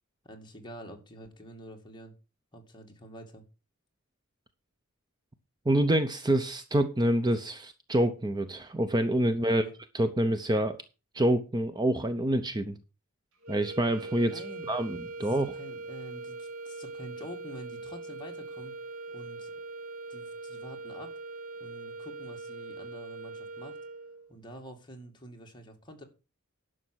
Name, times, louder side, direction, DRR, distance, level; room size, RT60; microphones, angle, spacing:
voice 1, 0.2-2.1 2.5-3.4 7.3-7.4 9.3-9.7 14.3-14.7 15.2-18.8 19.1-19.5 20.1-21.2 21.6-23.8 24.3-26.0, equal, 20° left, 2 dB, 2.4 m, -47 dB
voice 2, 5.7-9.6 9.9-10.8 11.1-12.8 13.5-14.4 14.7-15.5, right 1 dB, 20° right, 10 dB, 0.7 m, -27 dB
sound 1, 13.4-24.3, right 3 dB, 70° right, 2.4 m, -41 dB
11.5 x 6.6 x 6.2 m, 0.31 s
head